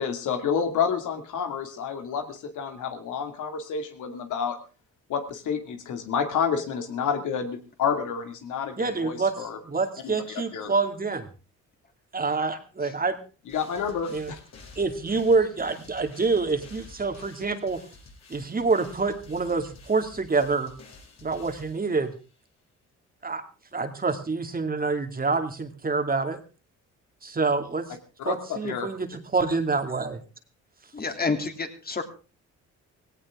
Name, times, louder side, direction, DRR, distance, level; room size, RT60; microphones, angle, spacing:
voice 1, 0.0-4.6 5.1-9.6 10.0-10.7 13.5-14.4 28.2-28.9, left 7 dB, 80° left, 6 dB, 2.5 m, -29 dB
voice 2, 8.8-9.3 9.6-11.3 12.1-13.2 14.1-14.3 14.8-17.8 18.3-20.7 21.2-22.1 23.2-23.4 23.7-26.4 27.2-27.9 28.2-30.2, right 4 dB, 30° right, 7 dB, 2.3 m, -26 dB
sound 1, 13.5-22.3, left 3 dB, 60° left, 6.5 m, -50 dB
voice 3, 30.9-32.0, left 4 dB, 30° left, 6 dB, 2.9 m, -28 dB
17.5 x 17.0 x 3.6 m, 0.35 s
cardioid pair, 90°, 30 cm